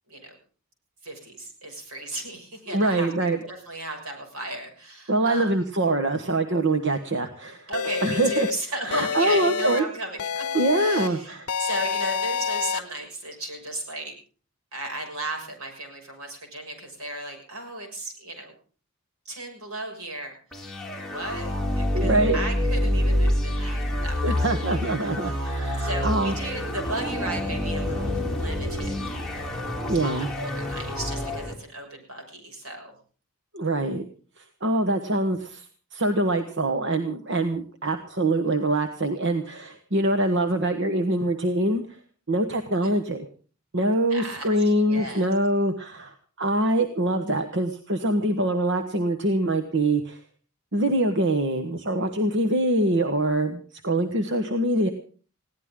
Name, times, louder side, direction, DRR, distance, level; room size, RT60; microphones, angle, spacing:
voice 1, 0.1-0.4 1.0-5.6 7.7-14.2 14.7-18.5 19.2-20.3 20.9-24.6 25.0-25.5 25.8-29.0 30.0-33.0 42.8-42.9 44.1-44.5 44.8-45.3 54.7-54.9, right 1 dB, 80° right, 3 dB, 6.4 m, -35 dB
voice 2, 2.7-3.4 5.1-7.7 8.0-8.5 8.9-9.8 10.5-11.5 21.9-22.4 24.2-26.3 29.9-30.3 33.5-34.1 34.4-35.7 35.9-41.8 42.3-43.2 43.7-50.2 50.7-54.9, right 1 dB, 55° right, 7 dB, 1.3 m, -24 dB
sound 1, 7.7-8.5 8.9-9.8 10.2-11.1 11.5-12.8, left 7 dB, 85° left, 0.7 m, -28 dB
sound 2, 20.5-31.5, left 1 dB, ahead, 3.0 m, -27 dB
21.0 x 16.5 x 3.8 m, 0.41 s
head